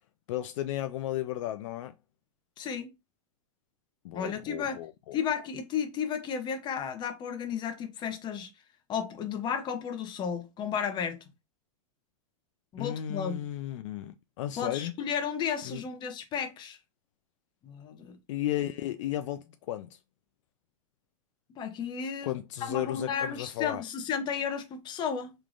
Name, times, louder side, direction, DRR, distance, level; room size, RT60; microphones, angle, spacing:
voice 1, 0.3-1.9 4.0-5.2 12.8-14.9 15.6-15.8 18.3-20.0 22.2-23.8, left 13 dB, 60° left, 0.5 m, -34 dB
voice 2, 2.6-2.9 4.1-4.8 5.1-8.5 8.9-11.2 12.7-13.4 14.6-16.8 17.6-18.2 21.6-22.3 22.6-25.3, left 7 dB, 25° left, 0.7 m, -33 dB
3.5 x 3.2 x 2.5 m
hypercardioid pair, 135°, 18 cm